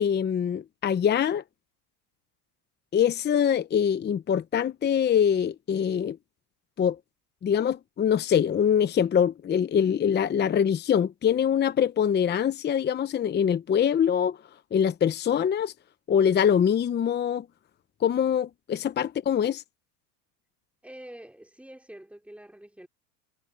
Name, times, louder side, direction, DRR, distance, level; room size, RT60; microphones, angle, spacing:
voice 1, 0.0-1.4 2.9-6.2 6.8-7.0 7.4-14.4 14.7-15.7 16.1-17.5 18.0-19.6, left 8 dB, 20° left, 0.8 m, -24 dB
voice 2, 20.8-22.9, right 1 dB, 5° right, 3.1 m, -46 dB
supercardioid pair, 115°, 49 cm